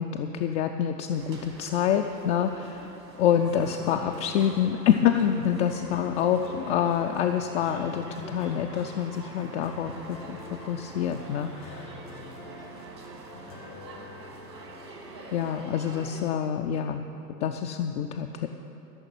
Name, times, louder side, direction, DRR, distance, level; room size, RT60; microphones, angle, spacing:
voice 1, 0.0-10.4 10.6-11.9 15.3-17.0 17.4-18.5, left 9 dB, 45° left, 4 dB, 0.6 m, -27 dB
sound 1, 1.1-16.2, right 3 dB, 80° right, 2.2 m, -45 dB
sound 2, 3.3-15.6, left 1 dB, 80° left, 2.1 m, -46 dB
13.5 x 6.5 x 8.7 m, 2.9 s
figure-of-eight pair, 80°, 49 cm